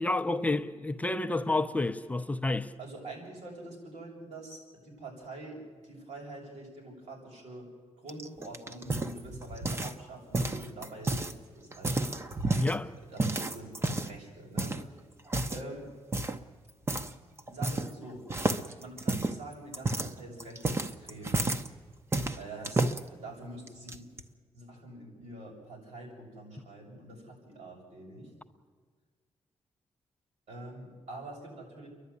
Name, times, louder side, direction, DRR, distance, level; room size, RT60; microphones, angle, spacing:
voice 1, 0.0-2.7 12.6-12.9, left 2 dB, 15° left, 0.5 m, -29 dB
voice 2, 2.8-4.6 4.8-5.6 5.8-7.7 8.0-12.1 13.1-14.7 15.5-15.9 17.5-18.2 18.8-21.4 22.3-24.1 24.5-28.3 30.5-31.9, right 2 dB, 90° right, 7.3 m, -45 dB
sound 1, 8.1-10.0 10.3-11.3 11.7-12.8 13.2-14.2 14.6-14.8 15.3-15.7 16.1-16.4 16.9-17.1 17.4-18.0 18.3-21.7 22.1-23.0 23.7-24.2, right 2 dB, 25° right, 0.8 m, -31 dB
29.5 x 11.5 x 9.7 m
wide cardioid pair, 175°, 11 cm